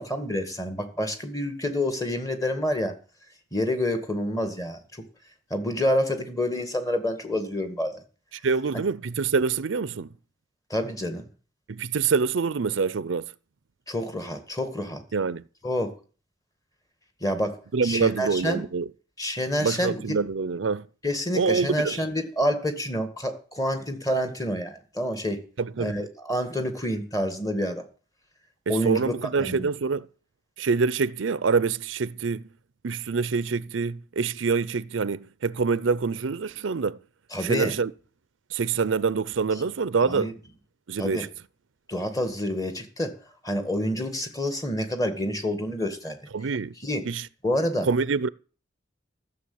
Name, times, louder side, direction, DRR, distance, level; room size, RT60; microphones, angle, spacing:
voice 1, 0.0-2.9 3.5-4.8 5.5-8.0 10.7-11.3 13.9-15.0 15.6-16.0 17.2-17.6 17.8-18.7 19.2-20.2 21.0-25.4 25.8-27.8 28.7-29.1 29.4-29.7 37.3-37.7 40.1-40.3 41.0-41.3 41.9-43.1 43.4-46.2 46.8-47.0 47.4-47.9, equal, 20° left, 1.9 m, -28 dB
voice 2, 8.4-10.1 11.7-13.3 15.1-15.4 17.7-18.9 19.6-20.9 21.3-22.0 25.6-26.1 28.7-30.1 30.6-32.4 32.8-37.0 37.4-37.9 38.5-40.3 40.9-41.3 46.3-46.7 47.1-47.3 47.8-48.3, right 5 dB, 85° right, 0.6 m, -26 dB
14.5 x 7.0 x 8.6 m
head